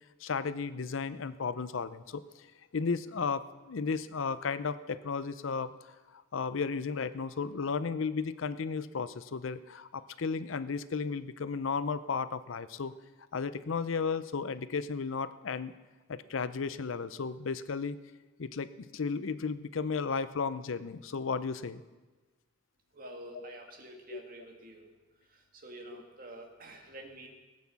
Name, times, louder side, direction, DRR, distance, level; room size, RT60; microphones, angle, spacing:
voice 1, 0.2-2.5 2.7-5.7 6.1-12.9 13.3-15.7 16.1-18.0 18.4-21.8 23.3-23.5 24.1-24.4 25.9-26.0, left 5 dB, 80° left, 14 dB, 0.6 m, -34 dB
voice 2, 22.9-24.9 25.3-27.3, right 1 dB, 45° right, 2 dB, 2.1 m, -48 dB
18.0 x 8.3 x 7.0 m, 1.2 s
head